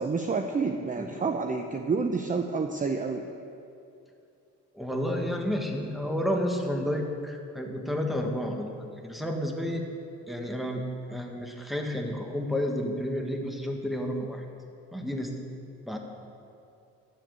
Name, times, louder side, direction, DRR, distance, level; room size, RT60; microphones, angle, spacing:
voice 1, 0.0-3.3, right 4 dB, 25° right, 5 dB, 0.6 m, -29 dB
voice 2, 4.7-9.9 10.3-10.8 11.1-14.4 14.9-15.3 15.9-16.0, equal, ahead, 2 dB, 1.6 m, -31 dB
11.0 x 7.5 x 8.0 m, 2.6 s
cardioid pair, 90°, 30 cm